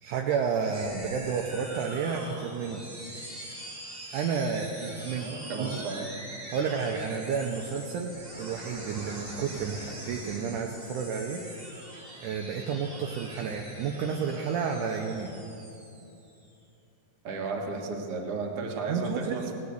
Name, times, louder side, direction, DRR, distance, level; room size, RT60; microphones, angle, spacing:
voice 1, 0.0-2.8 4.1-5.3 5.6-5.8 6.5-11.4 12.2-15.3 18.9-19.5, right 6 dB, 75° right, 1 dB, 2.1 m, -31 dB
sound 1, 0.7-16.5, right 1 dB, 20° right, 1.8 m, -43 dB
voice 2, 5.2-6.1 17.2-19.5, right 4 dB, 55° right, 1 dB, 2.0 m, -34 dB
18.0 x 6.6 x 8.2 m, 2.8 s
omnidirectional pair, 3.9 m